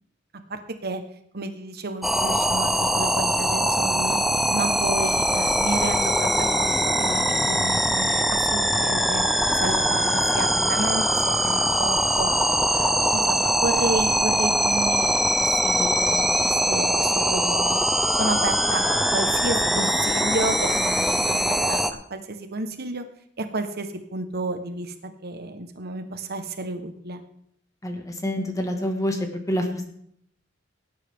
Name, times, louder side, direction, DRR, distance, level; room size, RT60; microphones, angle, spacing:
voice 1, 0.5-1.0 1.3-4.2 4.5-6.7 7.0-9.2 9.5-12.3 12.7-15.1 15.4-17.8 18.2-21.8 22.1-23.0 23.4-24.9 25.2-27.2, right 2 dB, 55° right, 7 dB, 1.3 m, -31 dB
sound 1, 2.0-21.9, equal, ahead, 0.7 m, -22 dB
voice 2, 27.8-29.2 29.5-29.7, equal, 20° left, 4 dB, 1.9 m, -26 dB
17.5 x 9.7 x 3.7 m, 0.69 s
head